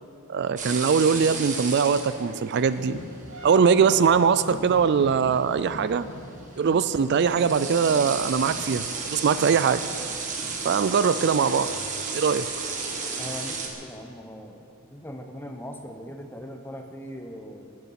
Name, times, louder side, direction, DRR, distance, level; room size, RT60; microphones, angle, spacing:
voice 1, 0.3-3.0 3.4-6.1 6.6-9.9 10.6-11.7 12.1-12.5, right 6 dB, 50° right, 14 dB, 0.3 m, -22 dB
sound 1, 0.6-13.7, right 4 dB, 35° right, 1.5 m, -34 dB
sound 2, 2.8-10.7, equal, 85° left, 2.2 m, -43 dB
sound 3, 3.3-5.8 6.1-13.4, right 1 dB, 80° right, 3.7 m, -45 dB
voice 2, 13.2-17.8, equal, 10° left, 4 dB, 0.9 m, -40 dB
19.0 x 9.6 x 5.8 m, 2.6 s
head